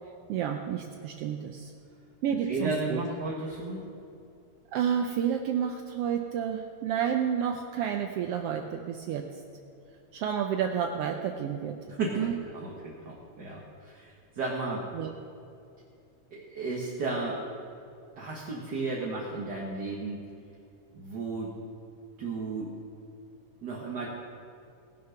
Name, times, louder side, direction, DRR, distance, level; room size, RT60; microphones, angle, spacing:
voice 1, 0.3-1.7 2.2-3.0 4.7-9.3 10.1-11.8 12.2-12.3 14.9-15.1, right 8 dB, 85° right, 4 dB, 1.3 m, -30 dB
voice 2, 2.4-3.8 11.9-12.3 12.5-14.8 16.3-17.4 18.2-20.2 20.9-21.5 22.2-22.7 23.6-24.1, right 3 dB, 50° right, -3 dB, 1.3 m, -33 dB
19.5 x 6.6 x 5.7 m, 2.6 s
omnidirectional pair, 3.5 m